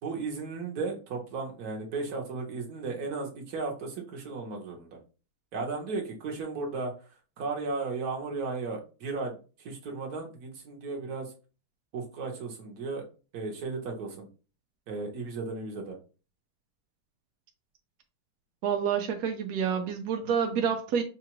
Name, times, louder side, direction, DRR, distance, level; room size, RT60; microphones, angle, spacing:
voice 1, 0.0-5.0 5.5-6.9 7.4-9.3 9.6-11.3 11.9-13.0 13.3-14.3 14.9-16.0, right 4 dB, 50° right, 0 dB, 1.3 m, -35 dB
voice 2, 18.6-21.0, right 7 dB, 80° right, 3 dB, 0.8 m, -28 dB
5.6 x 2.4 x 3.0 m, 0.35 s
omnidirectional pair, 2.4 m